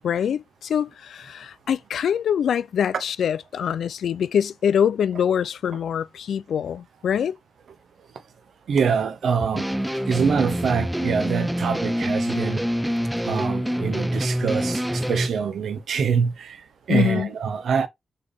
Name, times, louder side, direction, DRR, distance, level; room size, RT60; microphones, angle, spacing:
voice 1, 0.0-7.4 16.9-17.3, left 8 dB, 90° left, 0.3 m, -24 dB
voice 2, 8.7-9.6 10.1-12.6 13.3-16.5 16.9-17.9, right 6 dB, 80° right, 0.6 m, -24 dB
sound 1, 9.5-15.3, equal, 5° right, 0.4 m, -26 dB
4.1 x 3.3 x 3.5 m
cardioid pair, 75°, 0 cm